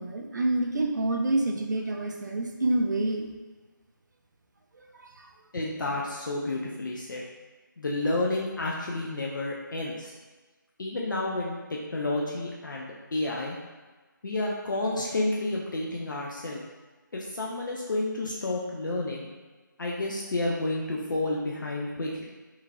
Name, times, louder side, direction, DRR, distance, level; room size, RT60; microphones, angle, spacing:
voice 1, 0.0-3.3 5.0-5.1, right 2 dB, 60° right, 2 dB, 0.4 m, -27 dB
voice 2, 5.5-7.2 7.8-10.1 10.8-13.6 14.2-16.6 17.1-19.3 19.8-22.2, left 2 dB, 65° left, -3 dB, 0.4 m, -30 dB
3.0 x 2.4 x 2.2 m, 1.3 s
figure-of-eight pair, 155°, 11 cm